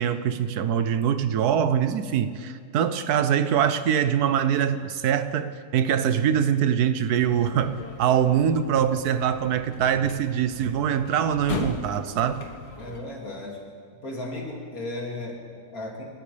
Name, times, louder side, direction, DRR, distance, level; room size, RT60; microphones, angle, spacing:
voice 1, 0.0-12.4, right 8 dB, 80° right, 11 dB, 1.3 m, -23 dB
sound 1, 7.1-13.0, left 2 dB, 80° left, 2.0 m, -37 dB
voice 2, 12.8-13.6 14.0-16.0, left 2 dB, 65° left, -2 dB, 3.0 m, -35 dB
29.5 x 13.5 x 3.4 m, 2.2 s
omnidirectional pair, 1.7 m